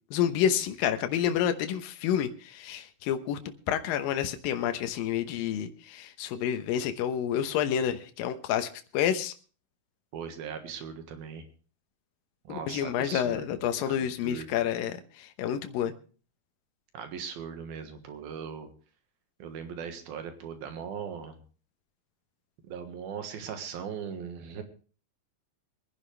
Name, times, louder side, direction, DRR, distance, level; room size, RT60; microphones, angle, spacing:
voice 1, 0.1-9.3 12.5-15.9, left 9 dB, 75° left, 8 dB, 2.7 m, -29 dB
voice 2, 10.1-11.4 12.4-14.5 16.9-18.7 19.4-21.4 22.6-24.6, right 7 dB, 80° right, 7 dB, 3.4 m, -39 dB
23.5 x 10.5 x 3.3 m, 0.39 s
omnidirectional pair, 4.3 m